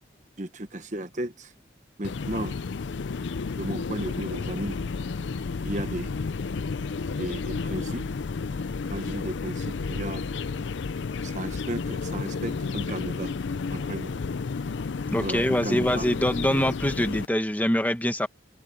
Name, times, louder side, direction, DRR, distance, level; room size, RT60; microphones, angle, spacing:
voice 1, 0.4-1.5 2.0-2.6 3.6-4.8 5.6-6.1 7.2-8.1 8.9-10.2 11.2-13.3 13.7-14.2 15.2-16.1, right 1 dB, 40° right, 1.2 m, -34 dB
sound 1, 2.0-17.3, left 4 dB, 70° left, 0.5 m, -32 dB
voice 2, 15.1-18.3, equal, 10° left, 1.3 m, -24 dB
open air
head